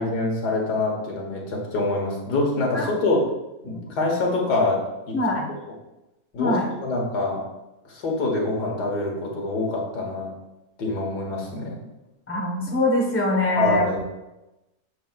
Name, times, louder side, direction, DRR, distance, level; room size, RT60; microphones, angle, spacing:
voice 1, 0.0-3.2 3.6-5.2 6.3-7.4 7.9-10.3 10.8-11.8 13.6-14.0, left 2 dB, 90° left, 0 dB, 2.0 m, -25 dB
voice 2, 5.1-5.5 6.4-6.6 12.3-13.9, left 2 dB, 10° left, 0 dB, 1.1 m, -23 dB
8.5 x 6.8 x 2.4 m, 0.96 s
omnidirectional pair, 1.7 m